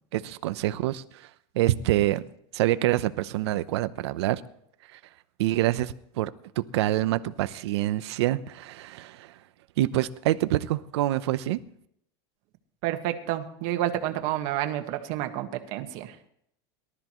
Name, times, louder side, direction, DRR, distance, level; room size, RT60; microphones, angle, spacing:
voice 1, 0.1-1.3 1.5-2.2 2.5-4.4 4.9-5.0 5.4-6.3 6.6-9.3 9.8-11.6, right 15 dB, 85° right, 0.8 m, -26 dB
voice 2, 12.8-16.1, right 13 dB, 55° right, 1.6 m, -29 dB
23.0 x 13.0 x 3.1 m
supercardioid pair, 150°, 14 cm